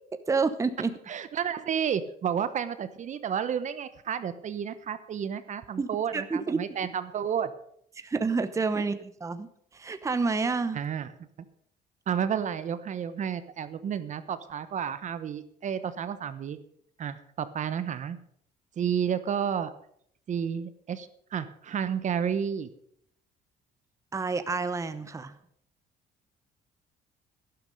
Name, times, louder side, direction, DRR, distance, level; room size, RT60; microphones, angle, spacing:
voice 1, 0.3-0.9 5.8-6.6 8.0-9.5 9.7-10.8 24.1-25.3, right 4 dB, 20° right, 11 dB, 0.8 m, -29 dB
voice 2, 1.1-7.5 10.7-11.1 12.1-16.6 17.0-18.2 18.8-19.7 20.3-22.7, right 8 dB, 45° right, 12 dB, 0.9 m, -31 dB
12.0 x 11.5 x 5.3 m, 0.66 s
cardioid pair, 110°, 17 cm